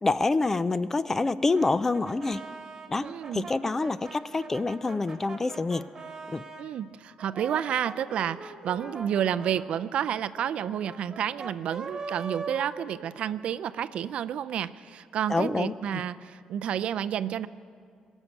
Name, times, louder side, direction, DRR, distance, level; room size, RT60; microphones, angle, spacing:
voice 1, 0.0-2.4 2.9-3.1 3.3-5.8 6.3-6.4 15.3-16.0, left 3 dB, 20° left, 16 dB, 0.3 m, -27 dB
Brass instrument, 1.5-6.7 7.2-13.5, right 4 dB, 30° right, 1.6 m, -42 dB
voice 2, 3.0-3.5 6.6-17.5, right 9 dB, 60° right, 13 dB, 0.4 m, -30 dB
21.0 x 7.2 x 9.6 m, 2.2 s
cardioid pair, 150°, 2 cm